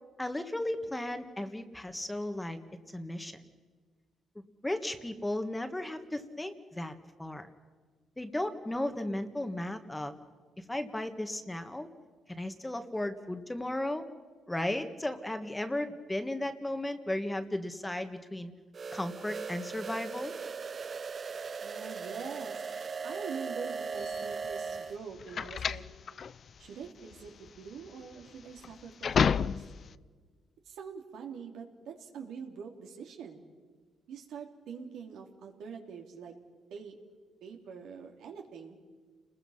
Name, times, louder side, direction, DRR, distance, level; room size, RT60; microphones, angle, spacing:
voice 1, 0.2-2.6 2.9-3.4 4.6-6.9 7.2-7.5 8.2-10.2 10.6-11.9 12.3-14.1 14.5-18.5 18.9-20.3, left 1 dB, 10° left, 8 dB, 1.6 m, -35 dB
sound 1, 18.7-25.0, right 5 dB, 40° right, 0.6 m, -38 dB
voice 2, 21.6-22.7 23.0-25.8 26.6-29.6 30.7-33.4 34.1-36.3 36.7-36.9 37.4-38.8, right 6 dB, 80° right, 2 dB, 3.1 m, -44 dB
sound 2, 24.0-29.9, left 7 dB, 50° left, 0.6 m, -32 dB
29.5 x 20.5 x 5.7 m, 1.5 s
cardioid pair, 90°, 0 cm